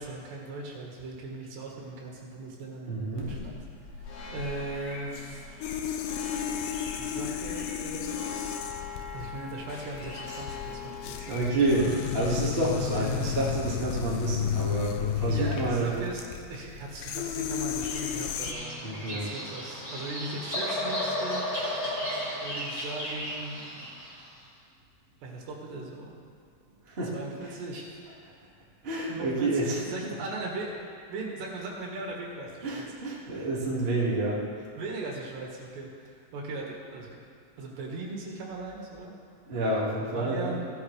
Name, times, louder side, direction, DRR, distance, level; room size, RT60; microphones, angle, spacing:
voice 1, 0.0-3.6 4.3-5.4 7.0-8.6 9.1-11.6 12.9-13.3 15.3-16.2 16.5-21.5 22.4-23.9 25.2-26.1 27.1-28.0 29.1-30.8 31.1-32.8 33.4-33.5 34.8-37.1 37.6-39.1 40.1-40.7, right 2 dB, 80° right, -3 dB, 3.8 m, -38 dB
voice 2, 2.9-3.3 11.2-16.0 18.8-19.3 26.9-27.5 28.8-29.8 32.6-34.4 39.5-40.5, right 2 dB, 40° right, -6 dB, 0.8 m, -29 dB
sound 1, 3.2-15.6, left 4 dB, 60° left, 2.2 m, -42 dB
sound 2, 5.6-18.5, left 9 dB, 80° left, 2.5 m, -33 dB
Bird vocalization bird call bird song, 17.6-24.2, left 1 dB, 15° left, 1.4 m, -34 dB
16.0 x 12.0 x 3.3 m, 2.2 s
omnidirectional pair, 4.9 m